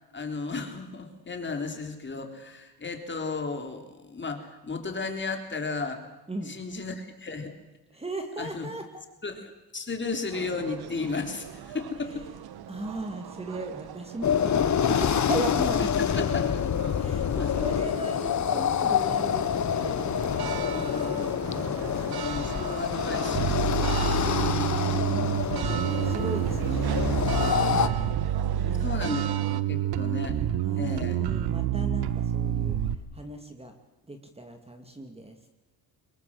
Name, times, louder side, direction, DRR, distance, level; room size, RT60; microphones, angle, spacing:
voice 1, 0.1-6.0 6.5-7.5 8.4-8.7 9.2-12.3 16.1-16.4 17.4-17.5 20.7-21.4 22.1-24.0 28.8-30.4 30.8-31.2, left 4 dB, 30° left, 5 dB, 3.7 m, -34 dB
voice 2, 7.9-8.8 12.7-16.4 17.0-21.7 24.4-28.0 28.6-28.9 29.7-29.9 30.6-32.8 33.1-33.7 34.1-35.4, right 1 dB, 15° right, 5 dB, 2.4 m, -37 dB
sound 1, 10.3-29.6, right 9 dB, 70° right, 1.4 m, -40 dB
sound 2, 14.2-27.9, left 8 dB, 45° left, 1.3 m, -27 dB
Bass guitar, 23.4-33.0, right 11 dB, 90° right, 1.3 m, -28 dB
24.0 x 20.5 x 7.8 m, 1.0 s
cardioid pair, 115°, 39 cm